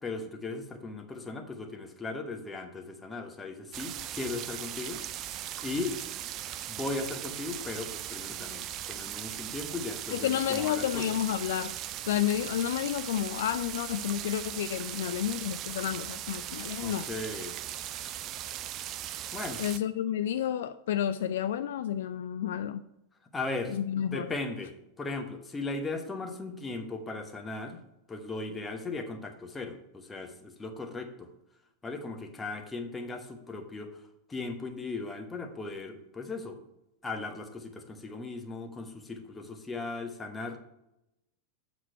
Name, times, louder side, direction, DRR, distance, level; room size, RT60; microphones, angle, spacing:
voice 1, 0.0-5.0 5.6-6.0 6.7-11.1 16.8-17.6 19.3-19.6 23.3-27.8 28.1-31.3 31.8-33.9 34.3-36.6 37.0-40.6, left 3 dB, 15° left, 5 dB, 1.1 m, -37 dB
sound 1, 3.7-19.8, right 12 dB, 35° right, 0.4 m, -39 dB
voice 2, 10.1-11.7 12.0-17.1 19.6-22.8 23.7-24.3, left 10 dB, 60° left, 12 dB, 0.3 m, -30 dB
7.8 x 6.2 x 4.5 m, 0.89 s
figure-of-eight pair, 90°, 0 cm